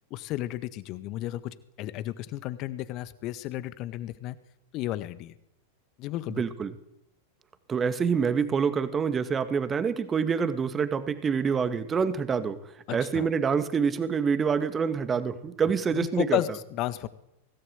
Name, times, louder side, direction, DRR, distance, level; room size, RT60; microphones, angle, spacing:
voice 1, 0.1-4.4 4.7-5.3 6.0-6.4 12.9-13.3 15.9-17.1, left 15 dB, 40° left, 14 dB, 1.7 m, -33 dB
voice 2, 6.3-6.7 7.7-12.6 12.9-16.4, right 6 dB, 20° right, 11 dB, 2.1 m, -26 dB
24.5 x 17.5 x 8.2 m, 0.83 s
figure-of-eight pair, 90°, 0 cm